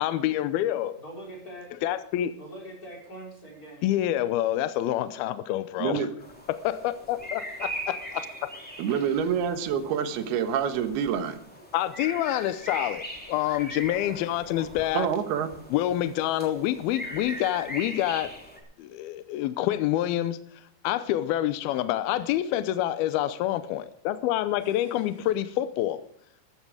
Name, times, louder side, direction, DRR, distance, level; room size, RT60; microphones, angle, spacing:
voice 1, 0.0-0.9 1.8-2.3 3.8-6.1 6.5-7.7 8.4-8.5 11.7-15.1 15.7-18.3 18.8-20.4 20.8-26.0, left 13 dB, 80° left, 13 dB, 2.6 m, -27 dB
voice 2, 1.0-1.7 2.4-3.9 7.6-7.7 11.6-11.7 24.6-25.1, right 1 dB, 20° left, -1 dB, 5.3 m, -43 dB
voice 3, 5.8-6.1 8.8-11.4 14.9-15.6, right 8 dB, 90° right, 9 dB, 3.3 m, -27 dB
sound 1, 6.2-18.6, equal, 5° left, 2.4 m, -40 dB
14.0 x 13.5 x 4.9 m, 0.70 s
omnidirectional pair, 4.4 m